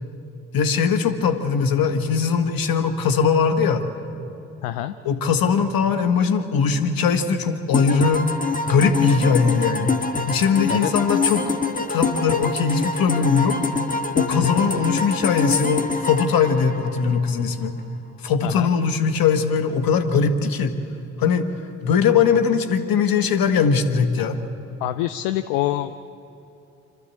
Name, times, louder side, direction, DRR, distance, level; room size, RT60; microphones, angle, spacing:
voice 1, 0.5-3.8 5.0-8.2 8.6-10.0 10.3-11.5 11.9-13.6 14.1-17.7 18.2-20.7 21.2-21.5 21.8-24.4, left 6 dB, 60° left, 8 dB, 1.6 m, -20 dB
voice 2, 4.6-5.0 10.7-10.9 14.3-14.6 18.4-18.7 24.8-26.1, left 14 dB, 80° left, 12 dB, 0.6 m, -26 dB
sound 1, 7.7-17.4, left 4 dB, 20° left, 1.5 m, -25 dB
27.0 x 12.5 x 8.6 m, 2.8 s
hypercardioid pair, 45°, 39 cm